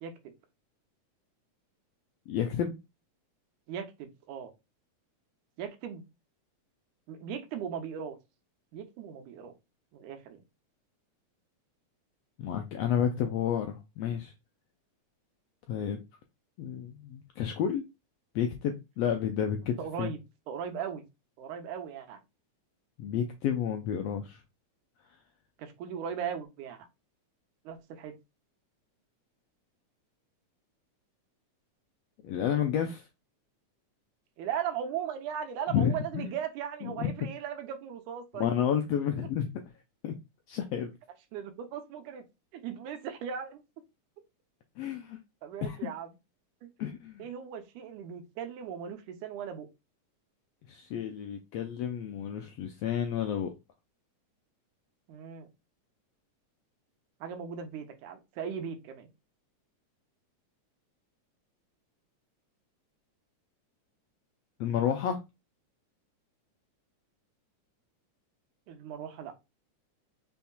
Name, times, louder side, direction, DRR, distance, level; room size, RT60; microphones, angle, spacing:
voice 1, 0.0-0.3 3.7-4.5 5.6-6.0 7.1-8.2 8.7-9.5 9.9-10.4 19.8-20.2 20.5-21.0 21.4-22.2 25.6-26.9 27.7-28.1 34.4-38.5 41.3-42.2 42.5-43.6 45.4-46.1 46.6-46.7 47.2-49.7 55.1-55.5 57.2-59.1 68.7-69.3, right 8 dB, 85° right, 2.3 m, -38 dB
voice 2, 2.3-2.8 12.4-14.3 15.7-16.0 16.6-17.8 18.3-20.1 23.0-24.4 32.2-33.1 35.7-36.3 36.8-37.1 38.3-39.5 40.0-40.2 40.5-40.9 44.8-45.2 45.6-45.9 46.8-47.3 50.7-53.5 64.6-65.2, left 8 dB, 90° left, 1.4 m, -31 dB
5.6 x 3.5 x 2.3 m
omnidirectional pair, 3.5 m